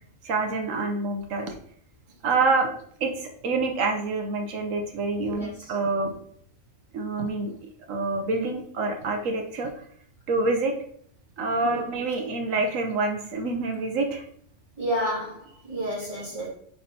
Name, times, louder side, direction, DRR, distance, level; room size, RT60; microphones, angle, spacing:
voice 1, 0.2-1.5 2.2-2.7 3.0-6.1 6.9-9.7 10.3-10.7 11.4-14.2 14.9-15.1, right 3 dB, 85° right, 4 dB, 1.2 m, -27 dB
voice 2, 5.2-5.5 11.6-11.8 14.8-16.5, equal, 25° right, -5 dB, 2.4 m, -30 dB
9.3 x 4.1 x 2.8 m, 0.63 s
omnidirectional pair, 1.3 m